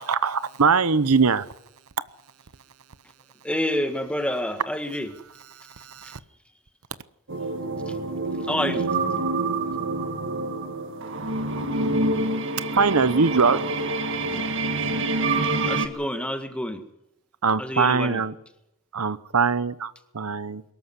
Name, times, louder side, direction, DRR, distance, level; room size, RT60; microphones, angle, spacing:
voice 1, 0.0-1.5 5.4-6.2 12.7-13.6 17.4-18.3 18.9-20.6, right 5 dB, 85° right, 15 dB, 0.9 m, -22 dB
voice 2, 3.4-5.1 6.0-6.1 8.5-8.9 15.6-16.8 17.6-18.2, left 1 dB, 5° left, 7 dB, 1.8 m, -28 dB
sound 1, 7.3-15.9, right 2 dB, 60° right, 1.9 m, -27 dB
23.0 x 13.5 x 9.9 m, 0.85 s
head